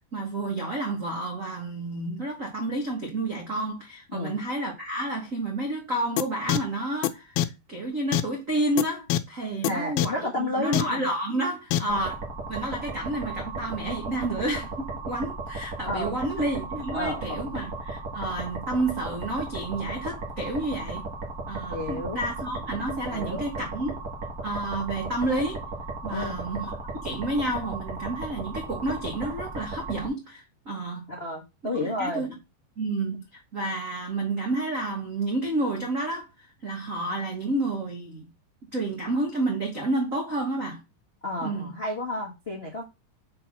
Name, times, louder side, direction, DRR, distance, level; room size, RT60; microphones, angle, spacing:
voice 1, 0.1-21.1 21.5-24.0 24.4-25.6 26.0-26.7 27.0-31.1 31.7-32.3 32.8-38.3 38.7-40.8 41.4-41.8, right 2 dB, 80° right, 0.7 m, -30 dB
sound 1, 6.2-6.3 6.5-6.6 7.0-7.1 7.4-7.5 8.1-8.2 8.8-8.9 9.1-9.2 9.6-9.7 10.0-10.1 10.7-10.8 11.7-11.8, left 13 dB, 85° left, 2.3 m, -22 dB
voice 2, 9.7-11.0 11.8-12.0 15.9-16.1 16.9-17.6 21.7-22.2 23.1-23.4 26.1-26.4 31.2-32.3 41.2-42.8, left 2 dB, 70° left, 0.5 m, -31 dB
sound 2, 11.9-30.1, right 3 dB, 40° right, 1.3 m, -36 dB
6.4 x 4.3 x 5.9 m
omnidirectional pair, 4.1 m